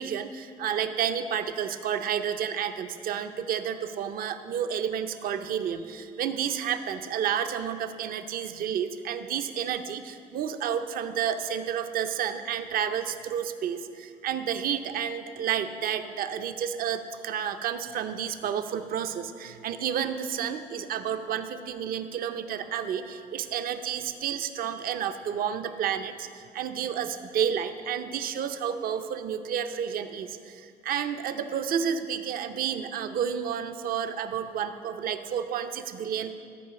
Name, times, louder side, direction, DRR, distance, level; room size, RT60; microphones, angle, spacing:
voice 1, 0.0-36.3, right 8 dB, 60° right, 9 dB, 0.6 m, -31 dB
13.0 x 4.7 x 6.8 m, 2.3 s
cardioid pair, 110°, 17 cm